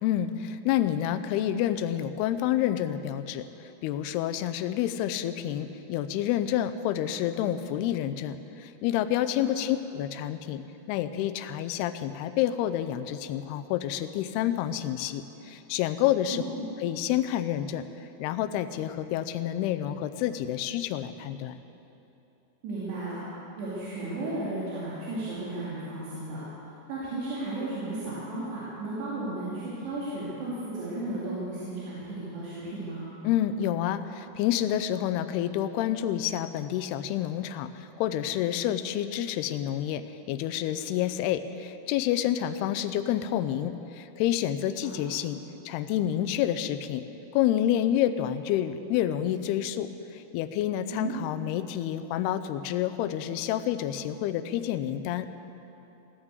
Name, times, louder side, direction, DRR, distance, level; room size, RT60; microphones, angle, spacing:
voice 1, 0.0-10.6 10.9-16.4 16.8-17.8 18.2-21.6 33.2-45.4 45.7-47.0 47.3-55.3, left 11 dB, 85° left, 11 dB, 2.6 m, -28 dB
voice 2, 16.3-16.7 22.6-23.2 23.6-26.4 26.9-33.1 44.8-44.9 50.9-51.2, right 2 dB, 85° right, -9 dB, 4.7 m, -34 dB
16.0 x 9.7 x 8.1 m, 2.9 s
omnidirectional pair, 4.7 m